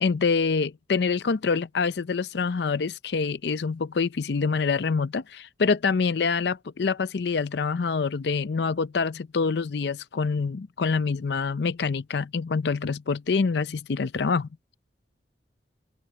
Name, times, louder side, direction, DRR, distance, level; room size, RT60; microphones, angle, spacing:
voice 1, 0.0-14.5, left 5 dB, 70° left, 0.5 m, -26 dB
open air
head